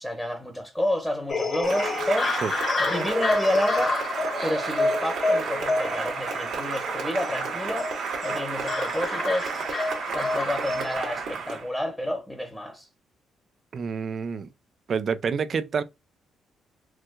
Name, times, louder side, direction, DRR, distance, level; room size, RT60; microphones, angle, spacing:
voice 1, 0.0-2.3 2.9-4.0 4.4-7.9 8.2-9.5 10.1-12.9, left 1 dB, 10° left, 1.0 m, -29 dB
sound 1, 1.3-11.0, left 3 dB, 40° left, 1.3 m, -29 dB
Cheering / Applause, 1.6-11.7, right 5 dB, 70° right, 1.4 m, -32 dB
voice 2, 13.7-14.5 14.9-15.8, right 6 dB, 50° right, 0.5 m, -28 dB
4.6 x 2.3 x 2.3 m
cardioid pair, 90°, 0 cm